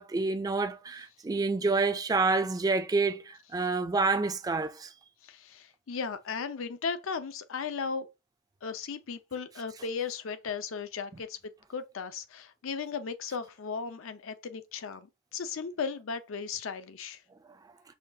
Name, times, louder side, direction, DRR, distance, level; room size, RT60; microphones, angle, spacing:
voice 1, 0.0-4.9, right 3 dB, 20° right, 0.3 m, -28 dB
voice 2, 5.2-8.1 8.6-11.4 11.7-17.2, left 5 dB, 75° left, 0.5 m, -36 dB
5.6 x 2.3 x 2.6 m
head